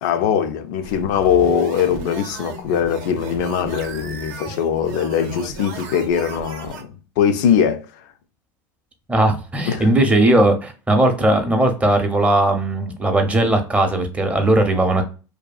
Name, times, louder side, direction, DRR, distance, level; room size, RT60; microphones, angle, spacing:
voice 1, 0.0-7.9 9.7-9.9, left 8 dB, 65° left, 0.4 m, -21 dB
sound 1, 0.8-6.8, right 4 dB, 65° right, 0.6 m, -35 dB
voice 2, 9.1-15.0, right 1 dB, 15° right, 0.6 m, -18 dB
2.6 x 2.3 x 2.3 m
hypercardioid pair, 105°, 10 cm